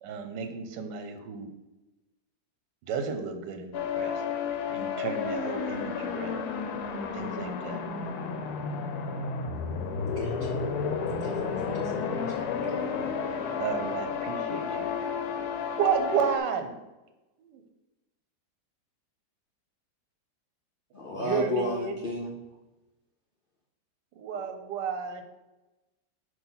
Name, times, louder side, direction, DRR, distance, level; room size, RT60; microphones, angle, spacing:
voice 1, 0.0-1.5 2.9-4.2 4.7-6.4 7.1-7.8 13.6-14.9 15.8-16.8 17.4-17.6 21.1-22.0 24.2-25.2, right 6 dB, 80° right, 6 dB, 1.3 m, -32 dB
sound 1, 3.7-16.4, left 6 dB, 70° left, 1.0 m, -32 dB
voice 2, 9.5-12.9, right 1 dB, 55° right, -6 dB, 1.6 m, -45 dB
voice 3, 20.9-22.3, left 2 dB, 55° left, -2 dB, 0.6 m, -31 dB
6.2 x 2.8 x 5.6 m, 1.0 s
omnidirectional pair, 1.9 m